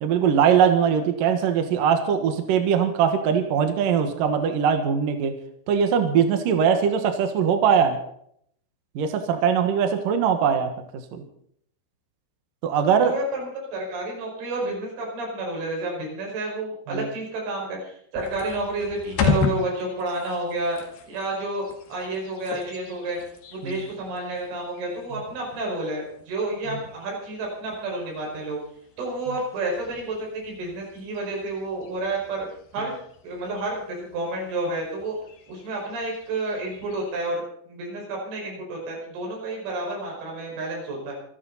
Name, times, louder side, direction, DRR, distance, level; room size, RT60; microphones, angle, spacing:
voice 1, 0.0-5.3 5.7-8.0 8.9-10.7 11.1-11.2 12.6-13.1 16.9-17.1 23.6-23.8, right 7 dB, 60° right, 6 dB, 2.7 m, -21 dB
voice 2, 13.0-20.8 21.1-23.2 23.5-28.6 29.0-32.5 32.7-32.9 33.2-35.2 35.5-41.1, right 2 dB, 85° right, -1 dB, 8.2 m, -30 dB
sound 1, 18.1-37.3, left 5 dB, 60° left, 3.5 m, -36 dB
26.5 x 12.0 x 4.2 m, 0.67 s
omnidirectional pair, 5.4 m